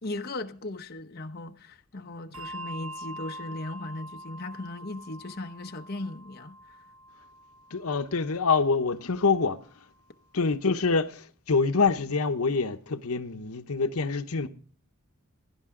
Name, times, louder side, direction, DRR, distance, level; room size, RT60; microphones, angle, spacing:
voice 1, 0.0-6.6, left 2 dB, 45° left, 0.9 m, -37 dB
Bell, 2.3-9.2, right 1 dB, 75° right, 1.3 m, -44 dB
voice 2, 7.7-9.6 10.3-14.5, left 4 dB, 80° left, 0.9 m, -26 dB
16.5 x 11.0 x 3.8 m
head